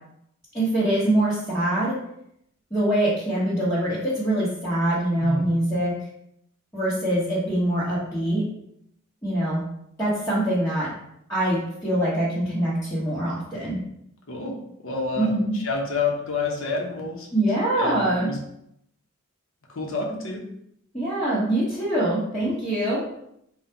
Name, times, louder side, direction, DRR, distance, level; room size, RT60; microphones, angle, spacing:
voice 1, 0.5-2.0 2.7-6.0 6.7-8.4 9.2-9.7 10.0-10.9 11.3-13.8 15.2-15.5 17.3-18.3 20.9-23.0, right 1 dB, 15° left, -11 dB, 1.1 m, -24 dB
voice 2, 14.8-17.3 17.7-18.4 19.7-20.4, left 4 dB, 80° left, 0 dB, 0.9 m, -29 dB
4.0 x 2.4 x 4.4 m, 0.76 s
head